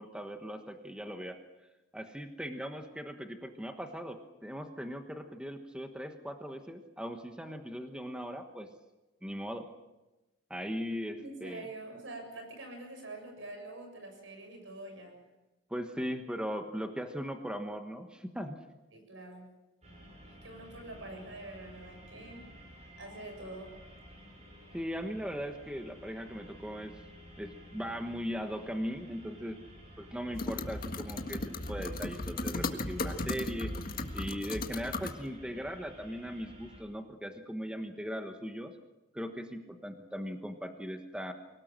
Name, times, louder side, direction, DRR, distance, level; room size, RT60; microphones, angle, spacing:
voice 1, 0.0-1.4 1.9-8.7 9.2-9.7 10.5-11.7 15.7-18.6 24.7-27.0 27.4-29.6 30.0-31.4 31.7-33.7 34.1-38.7 39.1-41.3, equal, 5° right, 5 dB, 1.2 m, -39 dB
voice 2, 11.1-15.2 18.9-19.5 20.2-22.4 23.0-23.8, right 2 dB, 70° right, 4 dB, 7.4 m, -45 dB
sound 1, 19.8-36.8, equal, 35° right, 6.2 m, -53 dB
sound 2, 30.3-35.1, left 2 dB, 45° left, 1.7 m, -36 dB
24.5 x 18.0 x 7.6 m, 1.1 s
head